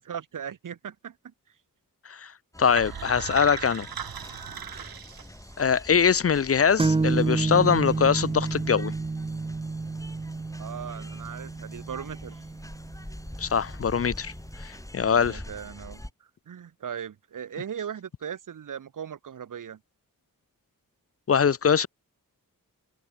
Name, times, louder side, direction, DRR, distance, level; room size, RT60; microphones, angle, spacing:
voice 1, 0.0-1.3 10.6-12.4 15.1-16.0 16.5-19.8, right 8 dB, 60° right, 0.9 m, -38 dB
sound 1, 2.5-16.1, left 1 dB, 10° left, 5.3 m, -45 dB
voice 2, 2.6-3.9 5.6-8.9 13.4-14.3 14.6-15.4 21.3-21.9, left 6 dB, 40° left, 0.5 m, -23 dB
sound 2, 2.7-5.8, right 8 dB, 80° right, 1.6 m, -37 dB
sound 3, 6.8-14.3, right 3 dB, 15° right, 0.4 m, -30 dB
wide cardioid pair, 135°, 35 cm